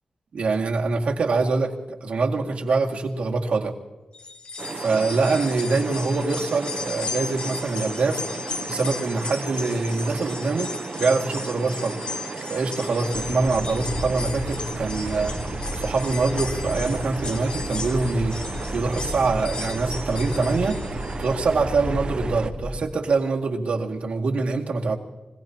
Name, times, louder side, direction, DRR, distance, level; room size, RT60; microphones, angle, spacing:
voice 1, 0.3-3.7 4.6-8.2 8.7-12.0 12.5-15.4 15.7-18.4 18.7-20.8 21.2-25.0, right 3 dB, 75° right, 0 dB, 2.2 m, -24 dB
sound 1, 4.1-21.5 21.9-22.0 23.1-23.2, left 3 dB, 60° left, 1.9 m, -36 dB
sound 2, 4.6-22.5, right 4 dB, 50° right, 0.6 m, -35 dB
sound 3, 13.1-22.8, equal, 40° left, 3.1 m, -33 dB
26.0 x 17.5 x 2.9 m, 1.1 s
wide cardioid pair, 120°, 2 cm